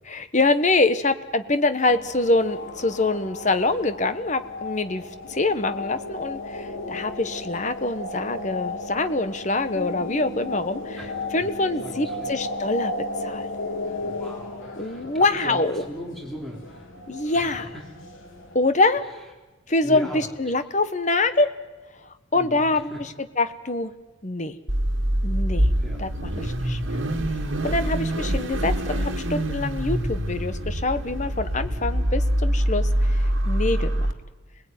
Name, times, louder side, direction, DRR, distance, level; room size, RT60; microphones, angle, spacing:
voice 1, 0.1-5.0 5.3-11.0 11.3-12.9 13.2-13.5 14.8-15.8 17.1-17.7 18.5-19.0 19.7-21.5 22.3-23.9 24.2-24.6 25.2-25.7 26.0-27.0 27.6-34.1, left 2 dB, 35° left, 10 dB, 1.2 m, -25 dB
sound 1, 1.9-18.6, left 2 dB, 80° left, 3.0 m, -35 dB
voice 2, 10.9-11.5 11.8-12.4 14.0-16.9 17.3-17.8 19.8-20.3 22.3-23.0 25.8-26.0 27.9-28.2 31.6-31.8, equal, ahead, -2 dB, 4.1 m, -39 dB
Car / Idling / Accelerating revving vroom, 24.7-34.1, right 1 dB, 70° right, 1.9 m, -24 dB
27.5 x 19.5 x 9.4 m, 1.2 s
head